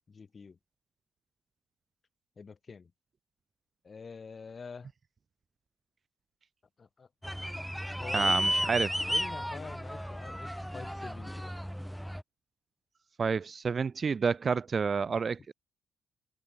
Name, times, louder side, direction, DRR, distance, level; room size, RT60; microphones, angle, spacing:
voice 1, 0.1-0.6 2.4-2.9 3.8-4.9 6.8-7.7 8.0-8.8 9.1-11.5, left 5 dB, 35° left, 6.9 m, -47 dB
sound 1, 7.2-12.2, equal, ahead, 4.1 m, -33 dB
voice 2, 8.1-8.9 13.2-15.5, right 5 dB, 40° right, 0.6 m, -29 dB
cardioid pair, 90°, 0 cm